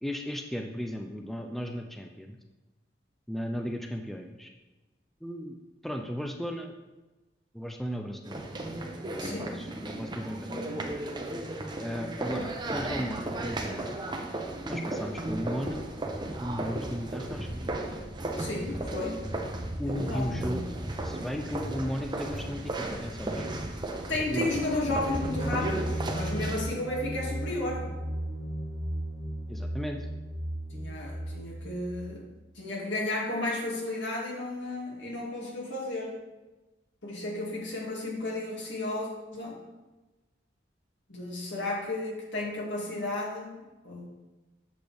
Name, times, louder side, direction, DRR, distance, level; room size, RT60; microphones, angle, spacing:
voice 1, 0.0-2.4 3.3-4.5 5.2-5.6 5.8-6.7 7.5-8.5 8.8-10.7 11.8-14.0 14.6-15.8 16.4-17.6 19.8-20.6 21.0-23.5 24.3-24.6 29.5-30.1, equal, ahead, 3 dB, 0.4 m, -35 dB
sound 1, 8.2-26.6, right 1 dB, 25° right, 0.7 m, -35 dB
voice 2, 9.2-9.9 18.4-19.2 19.8-20.6 24.1-27.9 30.7-32.2 32.5-36.1 37.0-39.6 41.1-44.1, left 2 dB, 75° left, -3 dB, 2.3 m, -33 dB
sound 2, 24.5-32.2, right 1 dB, 45° left, 1.7 m, -35 dB
7.8 x 6.9 x 3.4 m, 1.1 s
head